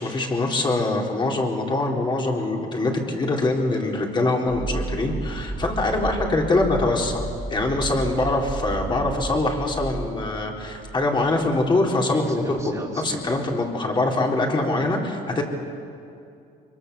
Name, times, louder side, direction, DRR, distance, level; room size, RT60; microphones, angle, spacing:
voice 1, 0.0-15.4, left 2 dB, 30° left, 0 dB, 4.0 m, -24 dB
sound 1, 4.5-11.7 12.1-13.5, right 3 dB, 20° right, 3.3 m, -33 dB
24.5 x 23.0 x 7.0 m, 2.5 s
cardioid pair, 110°, 17 cm